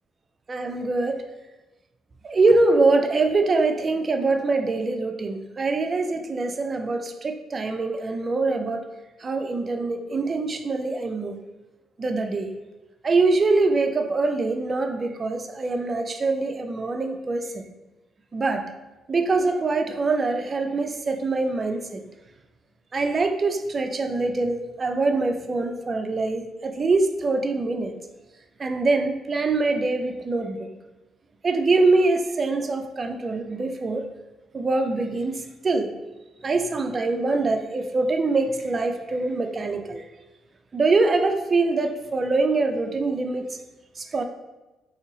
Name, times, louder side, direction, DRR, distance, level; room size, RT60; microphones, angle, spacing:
voice 1, 0.5-1.2 2.2-8.9 9.2-11.4 12.0-12.5 13.0-17.6 18.3-18.7 19.1-22.0 22.9-27.9 28.6-30.7 31.4-34.1 34.5-35.9 36.4-40.0 40.7-43.5 44.0-44.2, right 3 dB, 35° right, 5 dB, 0.4 m, -24 dB
2.8 x 2.7 x 3.8 m, 1.1 s
cardioid pair, 90°, 0 cm